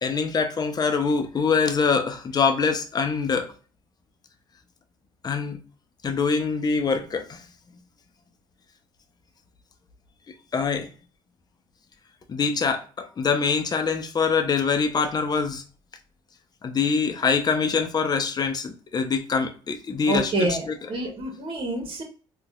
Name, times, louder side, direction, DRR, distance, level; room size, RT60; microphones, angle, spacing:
voice 1, 0.0-3.5 5.2-5.6 6.0-7.4 10.5-10.9 12.3-15.6 16.6-20.7, left 5 dB, 35° left, 0.7 m, -24 dB
voice 2, 20.1-22.0, right 2 dB, 50° right, 1.3 m, -27 dB
4.0 x 2.5 x 2.3 m
supercardioid pair, 70°, 11 cm